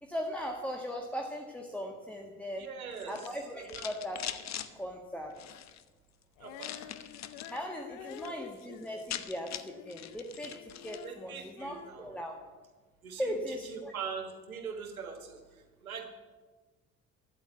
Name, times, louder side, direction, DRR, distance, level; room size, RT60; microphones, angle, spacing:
voice 1, 0.0-2.7 3.1-4.3 4.7-5.3 7.5-10.5 10.8-12.4 13.2-13.9, equal, 5° left, 2 dB, 1.7 m, -38 dB
voice 2, 2.6-3.9 6.4-6.7 8.0-8.3 11.0-12.2 13.0-16.0, right 6 dB, 80° right, 6 dB, 1.6 m, -42 dB
sound 1, 2.9-4.7 5.3-5.8 6.6-7.6 7.9-8.3 8.6-8.7 8.9-11.1, left 10 dB, 40° left, 1.0 m, -42 dB
Female singing, 6.4-10.2 10.5-12.6, left 11 dB, 60° left, 0.9 m, -50 dB
13.5 x 9.0 x 7.9 m, 1.3 s
figure-of-eight pair, 50°, 42 cm